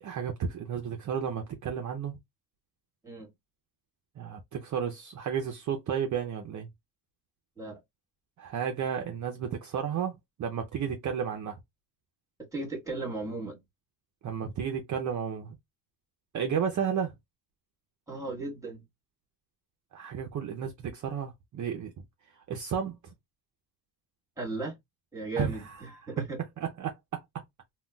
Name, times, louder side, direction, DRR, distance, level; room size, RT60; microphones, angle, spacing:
voice 1, 0.0-2.2 4.2-6.7 8.4-10.1 10.4-11.6 14.2-15.6 16.3-17.1 19.9-21.9 22.5-23.0 25.4-26.1 26.6-27.2, right 7 dB, 45° right, 0.5 m, -32 dB
voice 2, 12.5-13.6 18.1-18.8 24.4-24.8 25.1-26.4, right 2 dB, 10° right, 1.2 m, -36 dB
3.8 x 2.2 x 2.2 m
cardioid pair, 145°, 42 cm